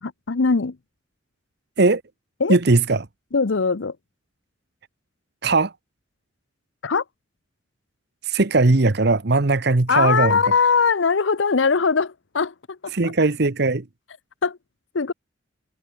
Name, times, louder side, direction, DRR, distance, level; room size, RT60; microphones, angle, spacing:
voice 1, 0.0-0.8 2.4-2.6 3.3-4.0 6.8-7.0 9.9-13.1 14.4-14.6 14.9-15.1, left 5 dB, 85° left, 0.8 m, -21 dB
voice 2, 2.5-3.0 5.4-5.7 8.3-10.4 12.9-13.8, right 3 dB, 60° right, 1.1 m, -19 dB
head